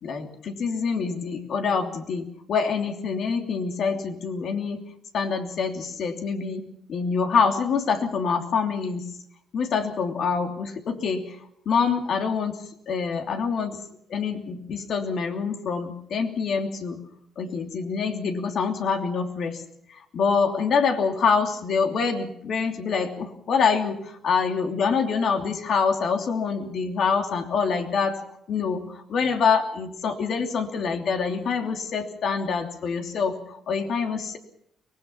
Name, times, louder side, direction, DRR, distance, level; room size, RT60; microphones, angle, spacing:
voice 1, 0.0-4.8 5.1-9.0 9.5-11.4 11.6-13.8 14.1-17.0 17.4-19.6 19.9-28.2 28.5-34.4, left 5 dB, 65° left, 4 dB, 3.0 m, -26 dB
24.0 x 20.0 x 5.9 m, 0.74 s
cardioid pair, 90°, 0 cm